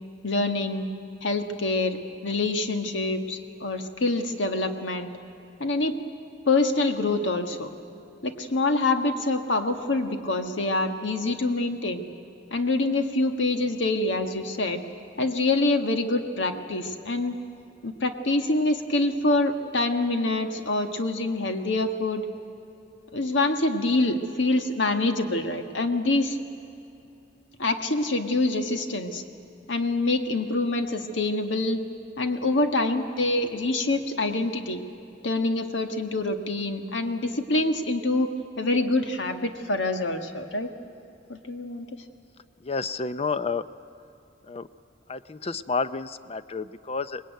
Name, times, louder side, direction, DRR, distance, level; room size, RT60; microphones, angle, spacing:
voice 1, 0.2-0.8 1.2-5.1 5.6-6.0 6.4-7.7 8.2-12.0 12.5-14.8 15.2-17.4 17.8-22.2 23.1-26.4 27.6-29.2 29.7-31.8 32.2-34.8 35.2-38.3 38.6-40.7 41.3-41.9, left 2 dB, 80° left, 6 dB, 1.7 m, -25 dB
voice 2, 42.6-43.7 44.4-44.7 45.1-47.2, left 4 dB, 35° left, 13 dB, 0.6 m, -30 dB
24.5 x 20.5 x 9.3 m, 2.8 s
head